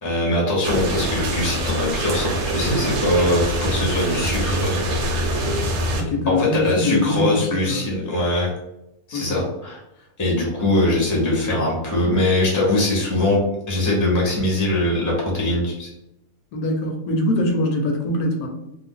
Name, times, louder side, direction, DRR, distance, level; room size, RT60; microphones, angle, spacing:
voice 1, 0.0-4.9 6.3-8.5 9.1-9.8 10.2-13.4 13.7-15.9, left 1 dB, 15° left, -3 dB, 0.7 m, -21 dB
sound 1, 0.6-6.0, right 1 dB, 80° right, 1.1 m, -24 dB
voice 2, 5.9-7.9 9.1-9.4 16.5-18.5, left 1 dB, 80° left, 3 dB, 1.1 m, -23 dB
2.6 x 2.3 x 3.6 m, 0.86 s
omnidirectional pair, 1.6 m